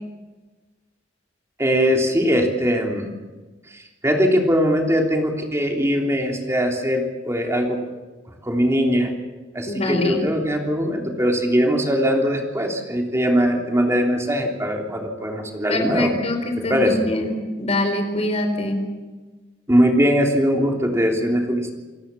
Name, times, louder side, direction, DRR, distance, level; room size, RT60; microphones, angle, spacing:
voice 1, 1.6-3.1 4.0-7.8 8.5-9.1 9.5-16.1 16.7-17.1 19.7-21.7, equal, 15° right, 1 dB, 3.4 m, -21 dB
voice 2, 9.7-10.2 15.7-18.9, left 1 dB, 35° left, 6 dB, 4.3 m, -24 dB
28.5 x 18.5 x 7.0 m, 1.3 s
head